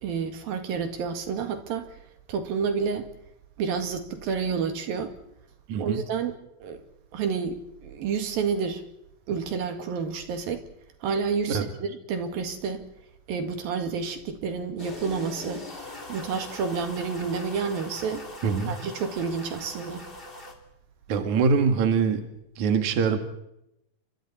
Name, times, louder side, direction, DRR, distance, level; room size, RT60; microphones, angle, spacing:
voice 1, 0.0-1.9 2.3-3.1 3.6-5.1 5.8-6.4 6.6-6.8 7.1-8.8 9.3-10.6 11.0-12.8 13.3-15.6 16.1-18.3 18.7-20.1, right 5 dB, 75° right, 3.7 m, -29 dB
voice 2, 5.7-6.0 11.5-11.6 18.4-18.8 21.1-22.2 22.6-23.2, right 5 dB, 55° right, 3.0 m, -23 dB
sound 1, 14.8-20.5, left 2 dB, 15° left, 3.1 m, -41 dB
30.0 x 26.0 x 4.2 m
omnidirectional pair, 4.3 m